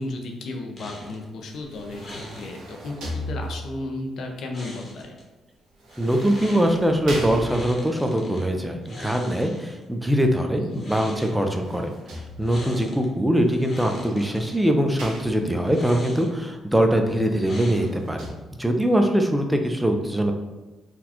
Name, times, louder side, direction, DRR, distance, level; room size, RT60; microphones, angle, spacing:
voice 1, 0.0-5.2 10.6-10.8, left 2 dB, 70° left, 2 dB, 0.6 m, -34 dB
sound 1, 0.8-1.3 2.0-2.5 4.5-5.2 5.9-6.7 7.4-8.5 8.8-9.8 10.6-11.4 12.4-13.1 13.4-14.6 15.6-16.5 17.4-18.1, left 1 dB, 40° left, 1.0 m, -41 dB
sound 2, 1.5-3.9 5.8-8.1 10.9-12.8 13.8-15.8 17.1-18.3, equal, 80° right, 0.8 m, -37 dB
voice 2, 6.0-18.2 18.6-20.3, equal, 5° right, 4 dB, 0.4 m, -22 dB
4.1 x 2.3 x 2.9 m, 1.2 s
cardioid pair, 90°, 0 cm